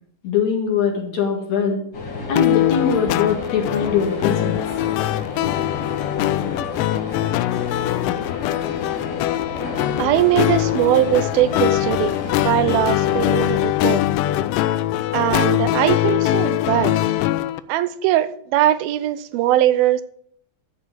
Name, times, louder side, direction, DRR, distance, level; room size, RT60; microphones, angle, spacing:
voice 1, 0.2-1.8 2.3-4.6, left 6 dB, 55° left, 3.0 m, -22 dB
sound 1, 1.9-13.6, left 3 dB, 40° left, 2.5 m, -32 dB
sound 2, 2.4-17.6, left 14 dB, 80° left, 2.0 m, -22 dB
voice 2, 10.0-12.1 12.4-14.0 15.1-17.0 17.7-20.0, right 13 dB, 85° right, 2.6 m, -20 dB
13.5 x 4.7 x 8.0 m
omnidirectional pair, 4.2 m